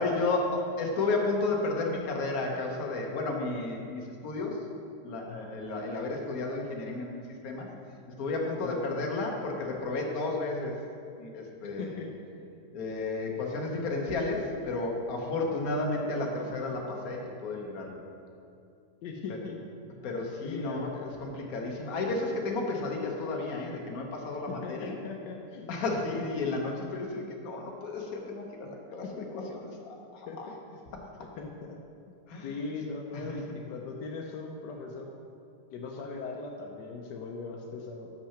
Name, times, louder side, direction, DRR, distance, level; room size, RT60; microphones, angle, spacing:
voice 1, 0.0-4.6 5.0-7.7 8.2-10.8 11.2-12.0 12.7-18.0 19.3-19.4 20.0-20.9 21.2-25.0 25.7-30.5 32.3-32.5 33.1-33.4, left 3 dB, 60° left, 0 dB, 1.4 m, -32 dB
voice 2, 11.8-12.1 19.0-19.6 20.4-20.9 24.5-25.8 26.1-26.2 29.0-29.6 30.3-30.6 31.4-31.8 32.1-32.2 32.4-35.1 35.7-38.1, left 3 dB, 85° left, 1 dB, 1.3 m, -39 dB
6.8 x 5.8 x 5.7 m, 2.5 s
omnidirectional pair, 1.8 m